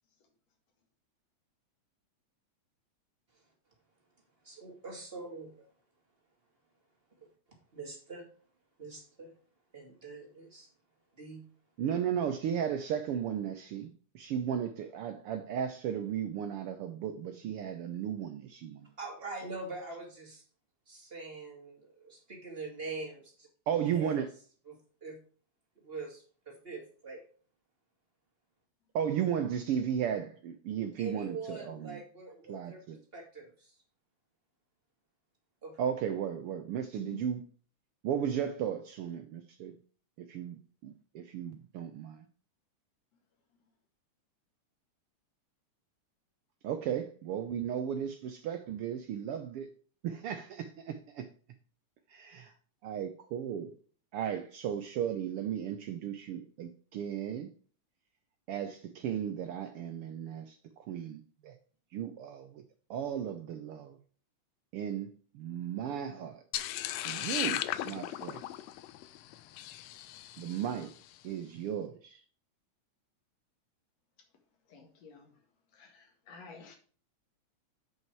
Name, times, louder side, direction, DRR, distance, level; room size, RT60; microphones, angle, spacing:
voice 1, 4.4-5.6 7.2-7.3 7.7-8.3 8.8-9.3 9.7-10.7 11.1-11.4 19.0-20.4 20.9-23.5 23.9-24.2 24.7-25.2 25.8-27.2 31.0-33.7 35.6-35.8, right 3 dB, 20° right, 2.3 m, -44 dB
voice 2, 11.8-18.9 23.7-24.3 28.9-32.0 32.5-33.0 35.8-37.4 38.0-39.8 40.2-42.3 46.6-49.7 50.0-51.3 52.1-52.5 52.8-53.7 54.1-57.5 58.5-61.6 61.9-62.6 62.9-64.0 64.7-65.1 65.3-66.4 67.0-68.4 70.4-70.9 71.2-72.2, right 9 dB, 80° right, 1.2 m, -35 dB
sound 1, 66.5-70.8, left 13 dB, 80° left, 1.6 m, -36 dB
voice 3, 74.7-75.3 75.7-76.8, left 5 dB, 65° left, 2.9 m, -50 dB
8.9 x 5.5 x 4.6 m
omnidirectional pair, 3.4 m